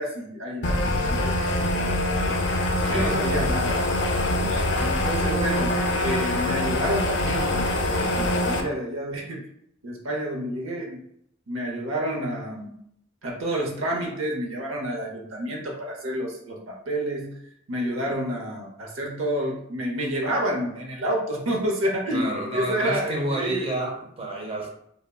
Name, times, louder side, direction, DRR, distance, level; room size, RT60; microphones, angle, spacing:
voice 1, 0.0-2.4 2.9-3.9 4.8-9.4 9.8-11.0 11.5-12.7 13.2-17.4 17.7-23.8, equal, 90° right, -1 dB, 0.7 m, -29 dB
sound 1, 0.6-8.6, left 1 dB, 55° left, 0.4 m, -24 dB
voice 2, 2.8-3.2 4.4-4.7 22.1-24.7, right 1 dB, 30° right, -1 dB, 0.6 m, -30 dB
3.5 x 2.0 x 2.2 m, 0.70 s
head